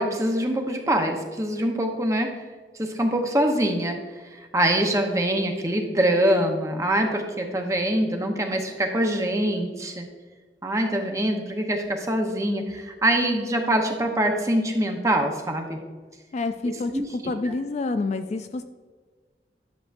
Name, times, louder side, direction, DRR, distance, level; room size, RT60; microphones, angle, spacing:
voice 1, 0.0-2.3 2.8-4.0 4.3-10.1 10.6-15.8 16.9-17.1, right 1 dB, 20° right, 3 dB, 0.8 m, -24 dB
voice 2, 16.3-18.6, left 3 dB, 40° left, 9 dB, 0.3 m, -28 dB
10.5 x 6.7 x 2.5 m, 1.4 s
head